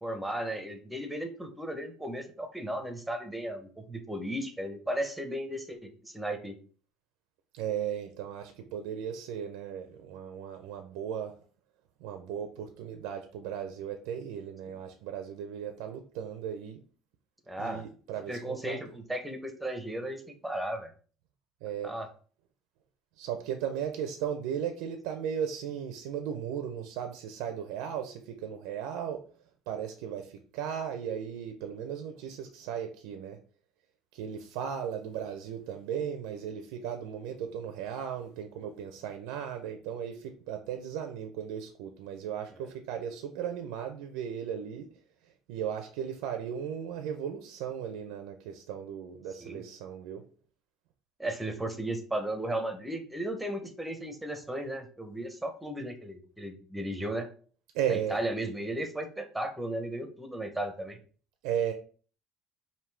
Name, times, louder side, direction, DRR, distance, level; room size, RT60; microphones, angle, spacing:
voice 1, 0.0-6.5 17.5-17.8 18.3-20.9 21.8-22.1 49.4-49.6 51.2-57.3 57.9-61.0, right 1 dB, 5° right, 6 dB, 0.7 m, -35 dB
voice 2, 7.5-11.4 12.0-16.8 17.6-18.8 21.6-21.9 23.2-29.2 29.7-33.4 34.1-44.9 45.2-50.2 57.7-58.2 61.4-61.7, right 8 dB, 90° right, 6 dB, 0.5 m, -36 dB
5.1 x 2.7 x 3.3 m, 0.41 s
cardioid pair, 150°, 0 cm